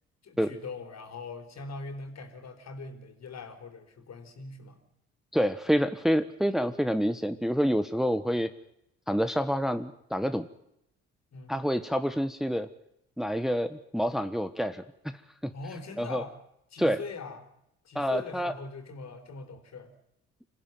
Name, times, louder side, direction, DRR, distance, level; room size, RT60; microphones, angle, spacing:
voice 1, 0.2-4.8 11.3-11.6 15.5-16.3 16.7-17.5 17.8-19.9, left 3 dB, 55° left, 6 dB, 4.3 m, -42 dB
voice 2, 5.3-8.5 9.1-10.5 11.5-12.7 13.2-14.8 15.4-15.5 16.0-16.2 16.8-17.0 17.9-18.5, equal, ahead, 10 dB, 1.3 m, -27 dB
26.5 x 15.0 x 9.3 m, 0.81 s
hypercardioid pair, 50°, 33 cm